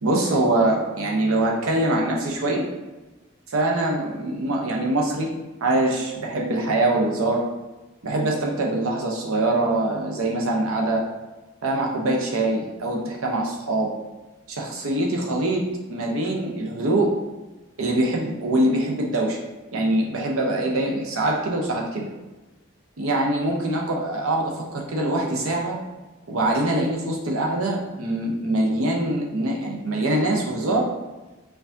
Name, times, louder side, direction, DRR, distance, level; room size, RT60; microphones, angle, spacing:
voice 1, 0.0-2.7 3.5-5.3 5.6-7.4 8.0-11.1 11.6-13.9 14.5-15.6 15.9-17.1 17.8-19.4 19.7-22.1 23.0-25.8 26.3-30.9, right 1 dB, 80° right, -1 dB, 0.7 m, -23 dB
4.5 x 2.4 x 2.6 m, 1.1 s
head